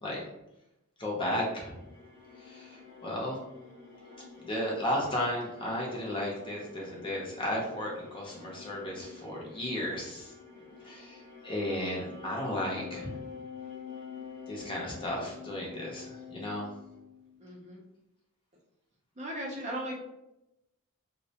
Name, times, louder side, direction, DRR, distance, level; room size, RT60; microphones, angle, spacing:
voice 1, 1.0-1.8 2.4-3.4 4.4-10.3 10.8-13.1 14.5-16.7, left 1 dB, 25° left, -3 dB, 0.6 m, -34 dB
sound 1, 1.4-17.6, left 6 dB, 75° left, 0.6 m, -48 dB
voice 2, 17.4-17.8 19.2-20.0, right 1 dB, 30° right, -2 dB, 0.5 m, -37 dB
2.4 x 2.0 x 2.7 m, 0.88 s
head